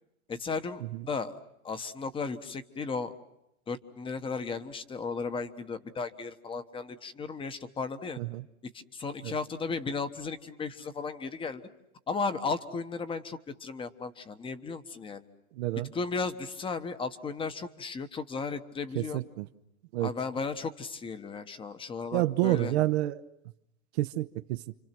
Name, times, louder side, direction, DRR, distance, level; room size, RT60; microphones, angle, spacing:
voice 1, 0.3-3.1 3.7-8.2 8.7-11.6 12.1-15.2 15.9-19.2 20.0-22.7, left 4 dB, 10° left, 11 dB, 1.3 m, -35 dB
voice 2, 15.6-15.9 18.9-19.5 19.9-20.1 22.1-23.2 23.9-24.6, right 16 dB, 50° right, 11 dB, 1.0 m, -28 dB
29.5 x 26.0 x 6.1 m, 0.83 s
hypercardioid pair, 145°, 42 cm